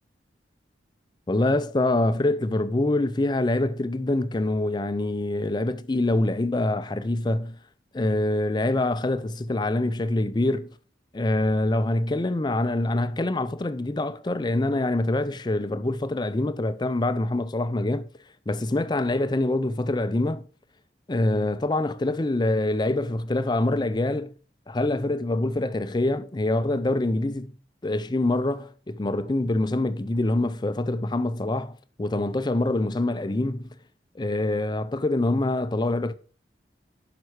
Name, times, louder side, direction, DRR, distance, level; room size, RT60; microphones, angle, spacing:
voice 1, 1.3-7.6 7.9-10.7 11.1-18.1 18.5-20.4 21.1-24.3 24.7-27.5 27.8-33.7 34.2-36.1, left 2 dB, 25° left, 0.5 m, -25 dB
11.0 x 5.9 x 4.7 m
head